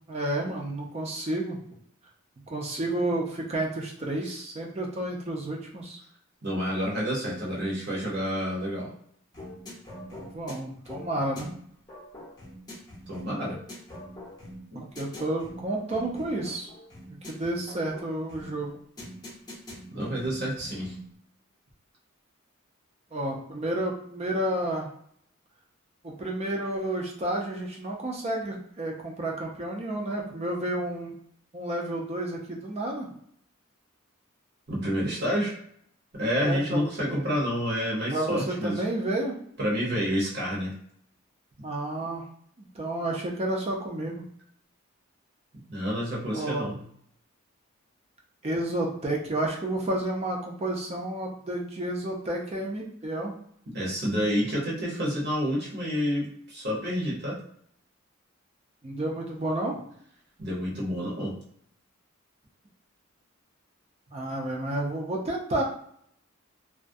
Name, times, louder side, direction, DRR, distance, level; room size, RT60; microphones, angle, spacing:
voice 1, 0.1-1.6 2.5-6.0 10.1-11.5 14.7-16.7 17.2-18.8 23.1-24.9 26.0-31.2 31.5-33.1 36.3-37.2 38.1-39.4 41.6-42.2 42.6-44.2 46.3-46.7 48.4-53.3 58.8-59.8 64.1-65.6, right 1 dB, 30° right, 0 dB, 0.4 m, -31 dB
voice 2, 6.4-8.9 13.1-13.6 14.7-14.8 19.9-20.9 34.7-35.5 36.1-38.8 39.6-40.7 45.7-46.8 53.7-57.4 60.4-61.3, equal, 50° right, -4 dB, 0.8 m, -29 dB
sound 1, 9.3-21.2, equal, 20° left, 0.7 m, -44 dB
2.3 x 2.1 x 2.6 m, 0.66 s
head